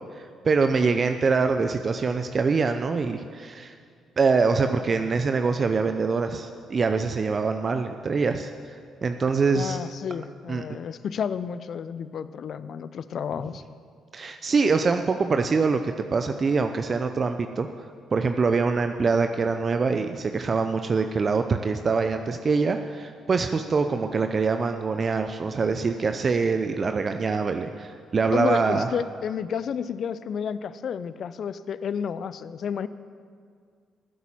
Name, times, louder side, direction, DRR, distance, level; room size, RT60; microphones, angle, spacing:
voice 1, 0.1-3.7 4.2-8.5 9.0-9.8 10.5-10.6 14.1-17.7 18.1-28.9, right 4 dB, 45° right, 7 dB, 0.6 m, -24 dB
voice 2, 9.5-13.6 28.3-32.9, left 7 dB, 60° left, 15 dB, 0.5 m, -31 dB
14.5 x 8.2 x 7.5 m, 2.1 s
hypercardioid pair, 50°, 0 cm